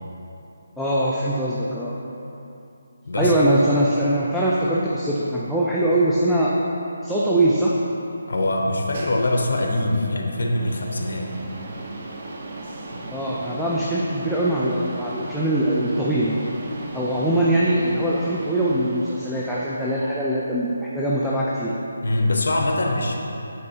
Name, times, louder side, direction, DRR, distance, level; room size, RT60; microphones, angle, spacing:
voice 1, 0.8-2.0 3.2-6.6 7.0-7.7 13.1-16.4 16.9-21.7, right 1 dB, ahead, -9 dB, 0.3 m, -22 dB
voice 2, 8.3-11.3 22.0-23.2, left 1 dB, 70° left, 2 dB, 0.8 m, -23 dB
sound 1, 8.5-20.2, right 2 dB, 40° right, 0.6 m, -37 dB
8.6 x 4.4 x 2.8 m, 2.8 s
hypercardioid pair, 165°, 0 cm